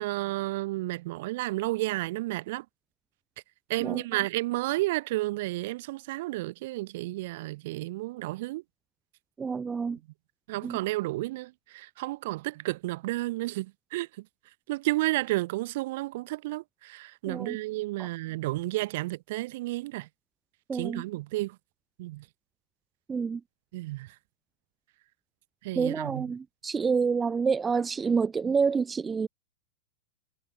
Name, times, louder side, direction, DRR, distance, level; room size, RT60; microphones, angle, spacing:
voice 1, 0.0-2.6 3.7-8.6 10.5-14.2 14.7-20.1 20.7-21.6 22.0-22.2 23.7-24.1 25.6-26.3, right 19 dB, 55° right, 6.9 m, -32 dB
voice 2, 9.4-10.0 10.6-10.8 17.3-17.6 18.0-18.1 20.7-21.0 23.1-23.4 25.7-29.3, right 5 dB, 15° right, 2.9 m, -28 dB
figure-of-eight pair, 100°, 0 cm